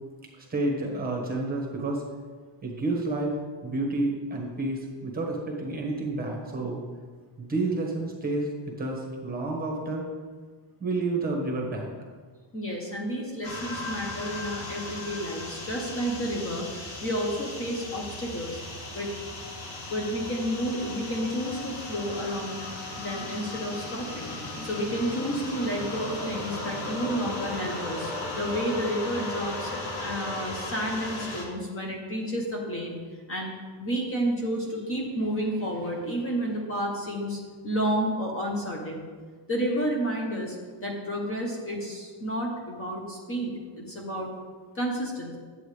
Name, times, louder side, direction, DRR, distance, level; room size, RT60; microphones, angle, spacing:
voice 1, 0.4-2.0 2.6-6.8 7.4-10.1 10.8-11.9, right 2 dB, 20° right, -1 dB, 1.4 m, -30 dB
voice 2, 12.5-18.6 18.9-19.1 19.9-22.7 23.0-33.0 33.3-33.5 33.8-39.1 39.5-40.6 40.8-44.3 44.7-45.4, equal, 25° left, -1 dB, 1.1 m, -31 dB
sound 1, 13.4-31.4, left 2 dB, 70° left, 1.9 m, -36 dB
10.5 x 7.8 x 3.3 m, 1.5 s
cardioid pair, 170°, 49 cm